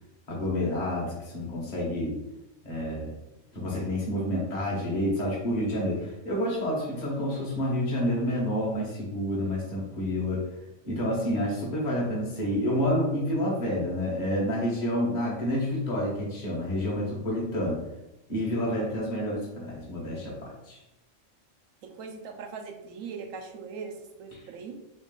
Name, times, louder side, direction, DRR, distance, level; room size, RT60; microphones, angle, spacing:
voice 1, 0.3-2.2 2.6-3.1 3.5-10.5 10.8-17.8 18.3-20.8 24.3-24.4, left 1 dB, 35° left, -4 dB, 1.1 m, -29 dB
voice 2, 21.8-24.8, right 5 dB, 80° right, 4 dB, 1.0 m, -40 dB
3.2 x 3.1 x 3.6 m, 0.92 s
omnidirectional pair, 1.4 m